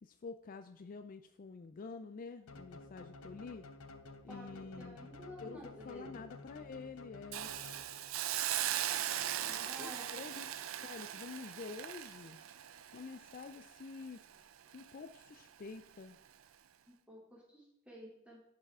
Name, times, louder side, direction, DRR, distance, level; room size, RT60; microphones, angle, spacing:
voice 1, 0.0-3.6 4.2-5.1 5.4-7.5 9.5-10.5 10.8-12.4 12.9-14.2 14.7-16.2, left 4 dB, 40° left, 9 dB, 0.4 m, -48 dB
sound 1, 2.5-8.2, left 2 dB, 90° left, 0.8 m, -52 dB
voice 2, 4.3-6.3 9.4-10.3 17.1-18.4, equal, 5° right, -5 dB, 3.0 m, -52 dB
Hiss, 7.3-14.4 14.7-14.9, right 11 dB, 75° right, 0.5 m, -39 dB
11.0 x 5.7 x 3.6 m, 0.79 s
head